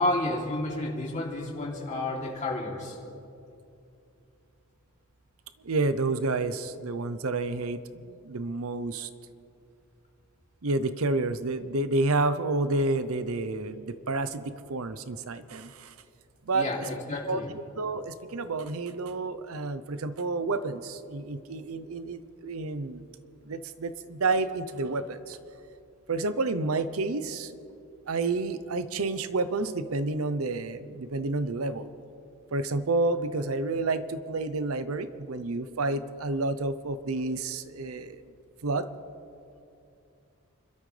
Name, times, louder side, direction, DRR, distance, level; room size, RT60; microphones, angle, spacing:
voice 1, 0.0-3.0 16.5-17.5, left 2 dB, 35° left, -3 dB, 3.0 m, -30 dB
voice 2, 5.6-9.1 10.6-15.9 16.5-16.9 17.3-17.4 17.8-23.0 23.4-25.4 26.1-27.5 28.1-31.9 32.5-38.2 38.6-38.9, right 3 dB, 75° right, 12 dB, 0.7 m, -30 dB
29.5 x 13.0 x 3.3 m, 2.6 s
head